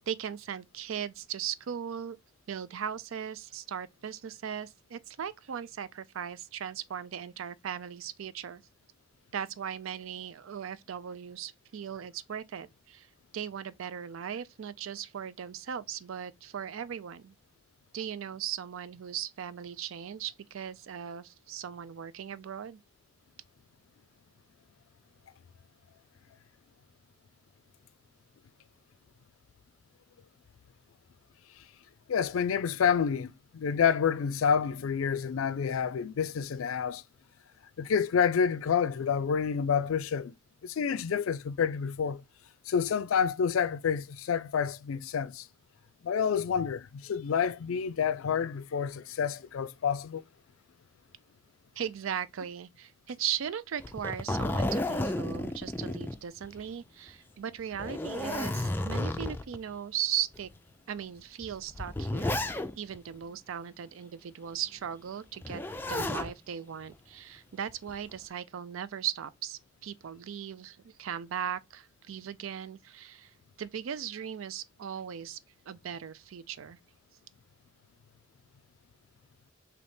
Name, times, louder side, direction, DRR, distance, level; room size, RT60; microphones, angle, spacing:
voice 1, 0.1-2.2 2.5-8.6 9.3-13.1 13.3-17.3 17.9-22.8 51.8-60.5 60.9-62.4 62.8-65.6 65.9-75.4 75.7-76.8, right 9 dB, 85° right, 0.4 m, -38 dB
voice 2, 32.1-37.0 37.8-40.3 40.6-42.2 42.7-45.4 46.0-50.2, left 7 dB, 90° left, 0.4 m, -28 dB
Zipper (clothing), 53.8-56.7 57.1-57.2 57.7-59.6 60.3-60.4 61.4-63.0 65.4-66.3 67.7-68.2, left 1 dB, 10° left, 0.3 m, -32 dB
4.0 x 2.8 x 3.4 m
head